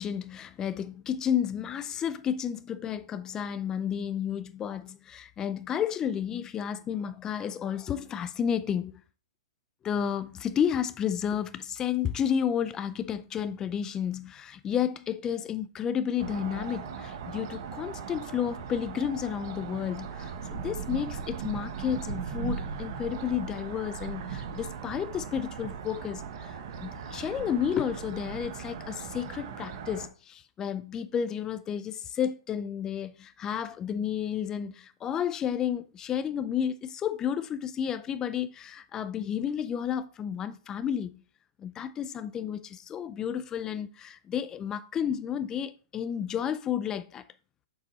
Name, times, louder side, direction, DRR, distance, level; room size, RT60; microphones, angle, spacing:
voice 1, 0.0-9.0 9.8-41.2 41.6-47.2, left 8 dB, 20° left, 0.5 m, -31 dB
sound 1, 16.2-30.1, right 7 dB, 55° right, 1.0 m, -38 dB
6.8 x 4.1 x 4.0 m
hypercardioid pair, 120°, 3 cm